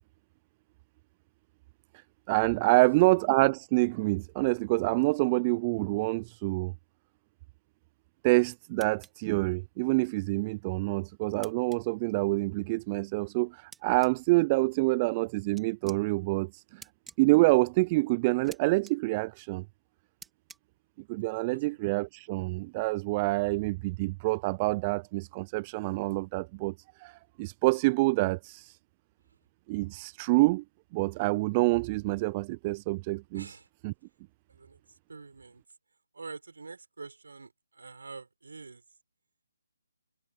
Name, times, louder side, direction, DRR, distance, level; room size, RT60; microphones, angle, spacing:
voice 1, 2.3-6.7 8.2-16.8 17.2-19.6 21.1-26.7 27.0-28.8 29.7-30.6 30.9-33.4 33.8-33.9, right 24 dB, 25° right, 0.6 m, -27 dB
sound 1, 8.8-9.1 11.4-11.8 13.7-14.1 15.6-16.0 16.8-17.2 18.4-18.6 18.9-19.0 20.2-20.6, right 5 dB, 5° right, 4.0 m, -48 dB
voice 2, 21.5-21.9 33.3-33.7 34.5-34.8 35.1-35.6 36.1-38.8, right 4 dB, 70° right, 6.6 m, -46 dB
figure-of-eight pair, 145°, 0 cm